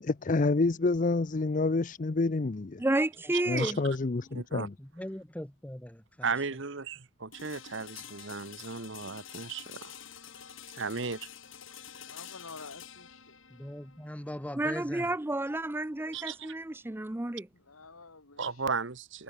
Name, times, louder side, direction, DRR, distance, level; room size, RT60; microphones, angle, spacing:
voice 1, 0.0-2.8 3.5-4.7, left 3 dB, 35° left, 0.5 m, -28 dB
voice 2, 2.8-3.8 14.5-17.5, right 1 dB, 10° right, 0.5 m, -31 dB
voice 3, 3.3-3.7 4.3-4.7 6.2-9.9 10.7-11.3 16.1-16.5 18.4-19.2, right 5 dB, 60° right, 1.2 m, -35 dB
voice 4, 4.8-6.3 13.5-15.1, equal, 5° left, 0.9 m, -41 dB
sound 1, 7.3-17.2, left 9 dB, 65° left, 4.8 m, -49 dB
voice 5, 12.0-13.3 17.7-18.4, left 4 dB, 90° left, 3.1 m, -48 dB
head